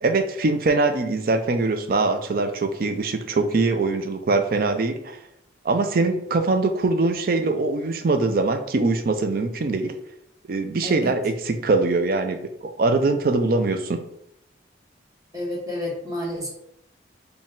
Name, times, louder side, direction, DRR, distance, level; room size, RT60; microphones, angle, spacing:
voice 1, 0.0-5.2 5.6-10.0 10.5-12.4 12.8-14.0, right 3 dB, 50° right, 8 dB, 0.4 m, -22 dB
voice 2, 15.3-16.5, left 1 dB, 20° right, -4 dB, 1.2 m, -30 dB
4.1 x 2.3 x 3.7 m, 0.76 s
head